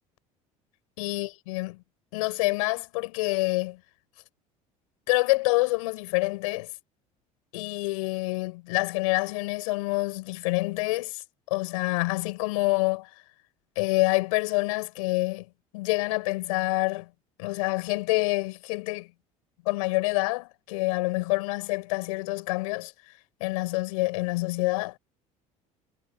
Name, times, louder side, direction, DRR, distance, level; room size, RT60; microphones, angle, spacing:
voice 1, 1.0-1.8 2.1-3.8 5.1-6.7 7.5-13.1 13.8-15.5 15.7-17.1 17.4-19.1 19.6-22.9 23.4-25.0, left 24 dB, 80° left, 4.3 m, -27 dB
hypercardioid pair, 75°, 17 cm